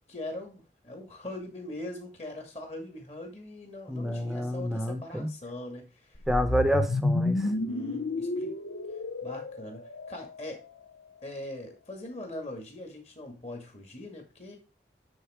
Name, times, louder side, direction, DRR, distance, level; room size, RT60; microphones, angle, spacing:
voice 1, 0.1-6.2 7.4-8.5 9.2-10.6 11.2-14.6, left 1 dB, 35° left, 3 dB, 2.2 m, -41 dB
voice 2, 3.9-5.3 6.3-7.5, equal, ahead, 8 dB, 0.8 m, -28 dB
sound 1, 6.1-10.5, left 2 dB, 75° left, 0.7 m, -30 dB
9.2 x 4.0 x 5.1 m, 0.31 s
head